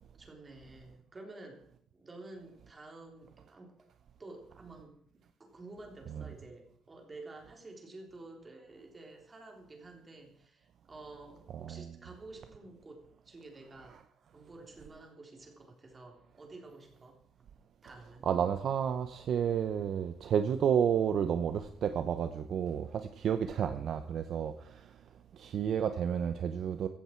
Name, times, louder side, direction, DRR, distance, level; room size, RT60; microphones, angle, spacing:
voice 1, 0.2-1.6 1.9-3.7 4.2-14.0 14.3-17.2 17.8-18.3, right 2 dB, 20° right, 3.4 m, -51 dB
voice 2, 18.2-24.9 25.3-26.9, right 8 dB, 50° right, 0.8 m, -31 dB
16.0 x 14.0 x 4.6 m
cardioid pair, 165°, 0 cm